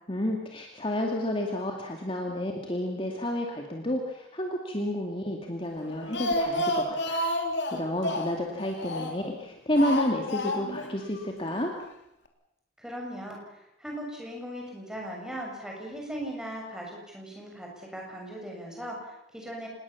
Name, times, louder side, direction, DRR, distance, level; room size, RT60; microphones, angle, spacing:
voice 1, 0.1-7.2 7.7-11.7, left 1 dB, 25° left, 1 dB, 2.3 m, -30 dB
Speech, 5.8-9.3 9.8-10.9 11.2-11.3 11.6-11.7, left 1 dB, 60° left, 3.4 m, -30 dB
voice 2, 12.8-19.7, equal, 5° right, -1 dB, 6.8 m, -39 dB
26.5 x 20.5 x 7.2 m, 0.84 s
head